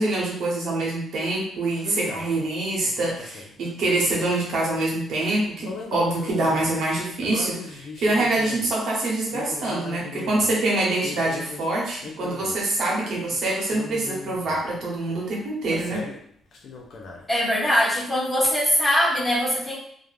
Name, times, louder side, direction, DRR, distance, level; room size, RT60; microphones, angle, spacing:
voice 1, 0.0-16.0, right 2 dB, 70° right, -3 dB, 0.8 m, -25 dB
sound 1, 1.8-2.3 2.8-4.4 5.6-6.8 7.2-8.8 9.3-10.5 11.0-11.7 12.0-12.7 13.3-14.7 15.7-16.2 16.5-17.3, left 3 dB, 60° left, 0.5 m, -38 dB
voice 2, 17.3-19.7, equal, 15° left, -8 dB, 1.4 m, -22 dB
2.3 x 2.1 x 3.2 m, 0.65 s
cardioid pair, 90°, 0 cm